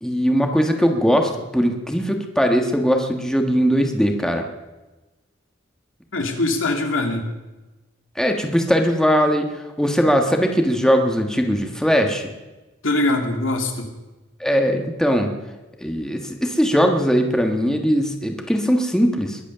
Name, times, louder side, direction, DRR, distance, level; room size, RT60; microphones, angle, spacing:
voice 1, 0.0-4.5 8.1-12.3 14.4-15.3 15.8-19.4, equal, 5° left, 3 dB, 1.4 m, -20 dB
voice 2, 6.1-7.3 12.8-13.9, left 2 dB, 75° left, 3 dB, 2.6 m, -22 dB
22.0 x 8.4 x 6.8 m, 1.1 s
head